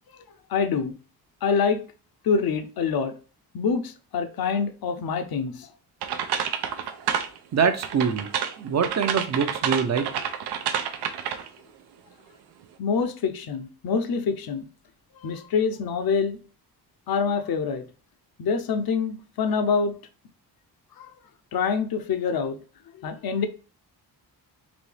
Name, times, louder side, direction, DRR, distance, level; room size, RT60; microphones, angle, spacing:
voice 1, 0.5-0.9 1.4-1.8 2.2-3.1 3.5-5.7 12.8-14.6 15.2-16.4 17.1-17.8 18.4-19.9 21.0-21.1 21.5-22.6 23.0-23.5, left 5 dB, 65° left, 0.7 m, -25 dB
sound 1, 6.0-7.4 7.8-11.6, right 8 dB, 90° right, 0.6 m, -29 dB
voice 2, 7.5-8.3 8.6-10.1, right 6 dB, 45° right, 0.6 m, -24 dB
4.0 x 2.8 x 3.3 m
cardioid pair, 100°, 39 cm